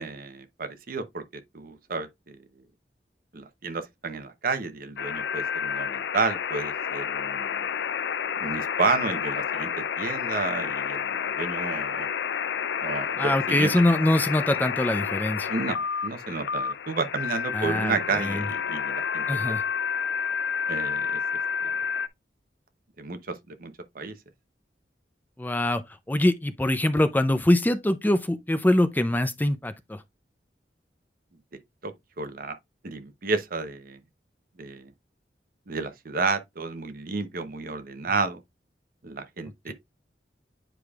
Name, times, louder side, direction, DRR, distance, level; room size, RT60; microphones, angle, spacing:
voice 1, 0.0-2.4 3.3-7.7 8.4-12.1 12.8-13.7 15.5-19.3 20.7-21.2 21.6-21.7 23.0-24.1 31.8-31.9 32.2-32.6 32.8-34.0 34.6-34.9 35.7-38.4 39.0-39.7, right 4 dB, 55° right, 0.8 m, -31 dB
sound 1, 5.0-22.1, left 7 dB, 75° left, 0.4 m, -30 dB
voice 2, 13.2-15.5 17.5-18.4 19.3-19.6 25.4-25.8 26.1-30.0 39.7-39.8, left 1 dB, 10° left, 0.5 m, -23 dB
9.2 x 4.9 x 2.4 m
head